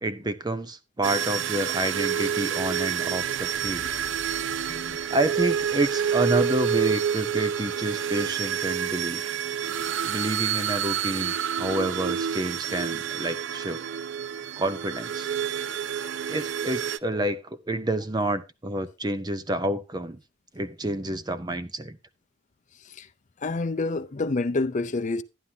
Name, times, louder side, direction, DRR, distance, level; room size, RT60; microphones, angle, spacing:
voice 1, 0.0-3.9 4.7-9.2 10.0-13.8 14.6-15.3 16.3-20.2 20.5-22.0, right 1 dB, 20° right, 0.6 m, -29 dB
sound 1, 1.0-17.0, right 8 dB, 75° right, 0.4 m, -28 dB
sound 2, 1.7-10.0, right 1 dB, 45° right, 2.3 m, -52 dB
sound 3, 3.0-7.4, left 4 dB, 85° left, 0.7 m, -51 dB
voice 2, 23.4-25.2, left 3 dB, 40° left, 0.5 m, -27 dB
11.5 x 11.0 x 2.8 m
head